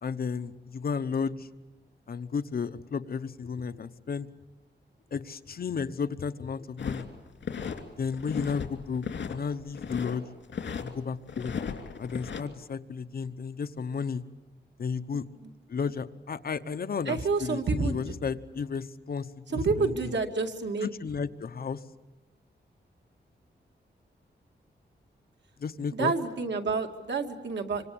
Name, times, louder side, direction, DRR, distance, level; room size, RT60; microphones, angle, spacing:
voice 1, 0.0-1.5 2.1-4.3 5.1-7.1 8.0-10.3 10.8-11.5 12.0-14.2 14.8-15.2 15.7-20.1 20.8-21.8 25.6-26.1, left 5 dB, 55° left, 11 dB, 0.9 m, -33 dB
sound 1, 6.8-7.8 8.1-8.7 9.0-10.2 10.5-10.9 11.3-12.4, left 6 dB, 85° left, 2.7 m, -35 dB
voice 2, 17.1-18.1 19.5-20.9 25.9-27.8, right 4 dB, 80° right, 4 dB, 2.3 m, -29 dB
26.0 x 25.5 x 8.6 m, 1.1 s
wide cardioid pair, 135°, 18 cm